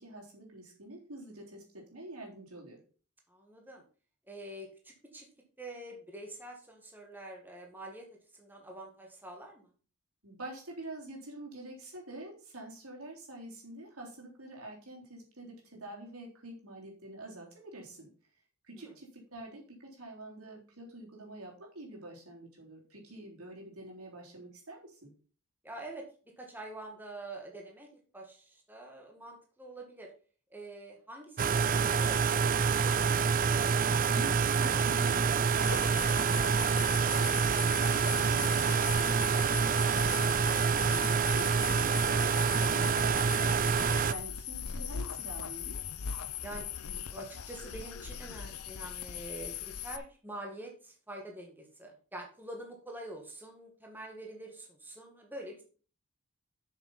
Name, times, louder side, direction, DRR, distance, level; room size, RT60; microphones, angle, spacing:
voice 1, 0.0-2.8 10.2-18.1 18.6-25.1 33.9-40.9 41.3-45.8, right 1 dB, 70° right, -1 dB, 3.6 m, -46 dB
voice 2, 3.3-3.8 4.3-5.3 5.6-8.1 8.3-9.7 18.8-18.9 25.6-26.1 26.4-30.1 30.5-33.0 46.4-46.7 47.1-55.6, right 1 dB, 10° right, 0 dB, 1.6 m, -46 dB
sound 1, 31.4-44.1, right 6 dB, 40° right, 0.4 m, -27 dB
sound 2, 35.6-50.0, left 9 dB, 80° left, 0.7 m, -40 dB
7.9 x 6.5 x 5.7 m, 0.39 s
head